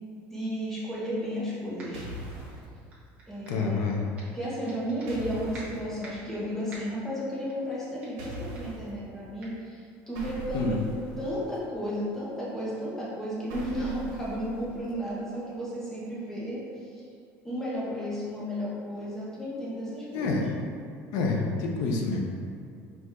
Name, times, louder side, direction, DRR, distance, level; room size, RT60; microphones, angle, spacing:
voice 1, 0.3-2.1 3.3-4.0 4.3-10.8 11.2-17.0 17.4-20.4, equal, 5° left, -8 dB, 0.9 m, -33 dB
sound 1, 1.8-2.1 2.5-3.7 4.2-5.3 5.5-6.3 6.7-7.1 7.5-7.7 8.0-8.3 8.5-8.8 9.4-9.5, right 2 dB, 25° right, 0.9 m, -48 dB
sound 2, 1.9-2.6 5.1-5.8 8.2-8.9 10.1-11.6 13.5-14.9, right 2 dB, 80° right, 1.0 m, -40 dB
voice 2, 3.5-4.0 10.5-10.8 20.1-20.5 21.1-22.2, left 3 dB, 65° left, 1 dB, 0.6 m, -27 dB
4.7 x 2.6 x 3.6 m, 2.3 s
cardioid pair, 170°, 6 cm